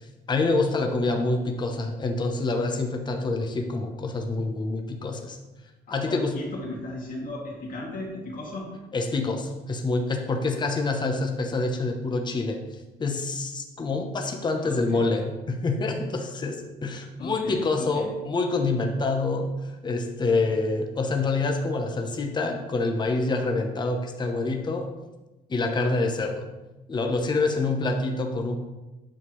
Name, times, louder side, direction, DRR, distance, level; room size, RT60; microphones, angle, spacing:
voice 1, 0.3-5.4 5.9-6.4 8.9-12.6 13.0-24.9 25.5-26.5 26.9-28.6, left 3 dB, 25° left, 4 dB, 0.9 m, -26 dB
voice 2, 6.0-8.7 14.6-15.0 17.2-18.1, left 2 dB, 55° left, -3 dB, 2.4 m, -36 dB
8.7 x 5.9 x 3.1 m, 1.1 s
cardioid pair, 110°, 17 cm